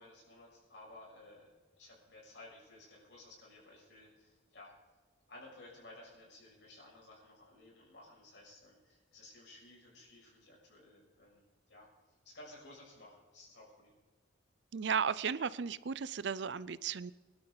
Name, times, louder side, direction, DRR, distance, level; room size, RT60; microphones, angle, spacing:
voice 1, 0.0-4.7 5.3-11.9 12.2-14.0, left 2 dB, 65° left, -3 dB, 6.5 m, -56 dB
voice 2, 14.7-17.1, right 6 dB, 65° right, 18 dB, 0.5 m, -35 dB
24.0 x 12.0 x 4.0 m, 1.3 s
head